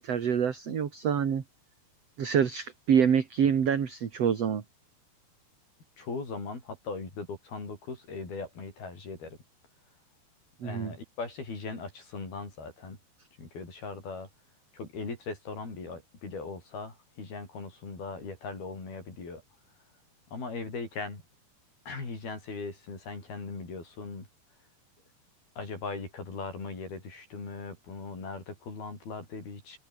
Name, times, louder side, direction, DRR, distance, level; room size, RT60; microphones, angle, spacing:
voice 1, 0.0-1.4 2.2-4.6 10.6-10.9, right 7 dB, 45° right, 2.8 m, -26 dB
voice 2, 6.0-9.4 10.6-13.0 13.4-14.3 14.7-19.4 20.3-21.2 21.9-24.3 25.6-29.8, left 4 dB, 60° left, 9.9 m, -39 dB
omnidirectional pair, 5.0 m